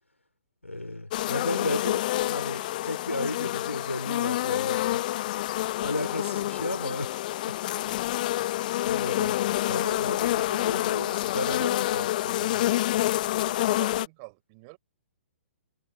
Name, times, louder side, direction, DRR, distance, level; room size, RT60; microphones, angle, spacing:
voice 1, 0.6-5.1 5.8-7.1 8.5-12.7, left 2 dB, 85° left, 3.9 m, -34 dB
sound 1, 1.1-14.1, left 15 dB, 40° left, 0.7 m, -28 dB
voice 2, 7.6-8.1 8.4-8.5 11.3-11.4 13.4-14.8, right 29 dB, 35° right, 6.4 m, -47 dB
figure-of-eight pair, 120°, 7 cm